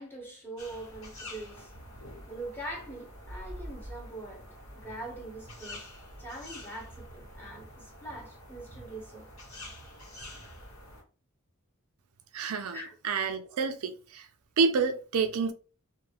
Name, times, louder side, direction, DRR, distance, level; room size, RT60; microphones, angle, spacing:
voice 1, 0.0-5.9 6.2-9.3 12.7-13.0, right 1 dB, 10° left, 1.0 m, -43 dB
sound 1, 0.6-11.0, left 1 dB, 70° left, 1.2 m, -46 dB
voice 2, 12.3-12.8 13.0-14.3 14.6-15.5, right 5 dB, 75° right, 0.4 m, -28 dB
2.4 x 2.3 x 3.3 m
head